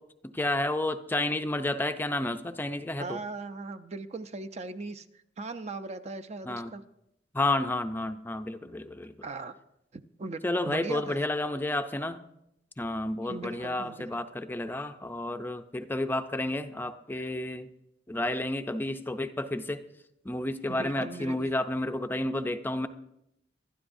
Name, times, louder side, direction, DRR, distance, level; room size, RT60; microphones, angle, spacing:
voice 1, 0.2-3.2 6.5-6.7 7.3-9.1 10.4-12.2 12.8-17.7 18.1-19.8 20.2-22.9, left 1 dB, 10° left, 9 dB, 0.5 m, -31 dB
voice 2, 3.0-5.1 5.4-6.8 9.2-9.5 9.9-11.3 13.3-14.1 20.6-21.5, right 3 dB, 40° right, 9 dB, 0.5 m, -39 dB
24.0 x 12.0 x 2.6 m, 0.83 s
head